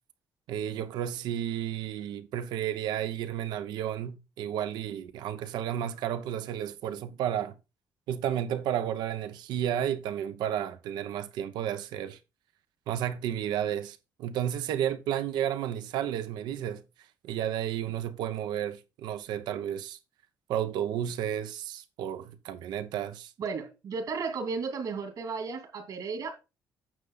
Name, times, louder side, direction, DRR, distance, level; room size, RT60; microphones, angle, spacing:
voice 1, 0.5-7.5 8.1-12.2 12.9-16.8 17.2-20.0 20.5-23.3, right 10 dB, 85° right, 0.9 m, -32 dB
voice 2, 23.4-26.3, right 4 dB, 65° right, 2.7 m, -34 dB
9.1 x 6.8 x 3.9 m
cardioid pair, 85°, 7 cm